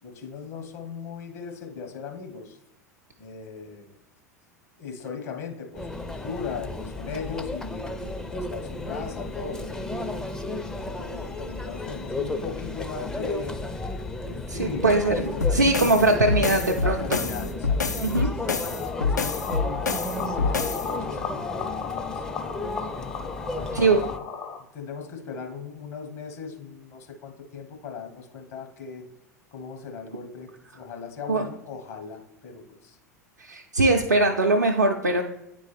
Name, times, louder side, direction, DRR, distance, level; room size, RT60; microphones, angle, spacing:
voice 1, 0.0-2.6 3.2-4.0 4.8-9.8 10.7-13.6 14.2-16.1 16.8-18.9 19.1-19.3 20.0-21.5 21.9-22.4 23.4-24.2 24.7-29.1 29.5-33.0, left 5 dB, 55° left, 3 dB, 1.3 m, -38 dB
Conversation / Chatter / Crowd, 5.7-24.2, left 2 dB, 5° left, 0.4 m, -33 dB
voice 2, 14.5-15.2 15.5-17.2 18.0-18.3 23.7-24.0 31.3-31.4 33.4-35.2, right 2 dB, 85° right, 1 dB, 0.5 m, -21 dB
sound 1, 15.4-20.9, left 4 dB, 85° left, 0.4 m, -27 dB
sound 2, 18.5-24.6, left 6 dB, 40° left, 0.8 m, -35 dB
9.4 x 3.7 x 3.3 m, 0.90 s
figure-of-eight pair, 80°, 9 cm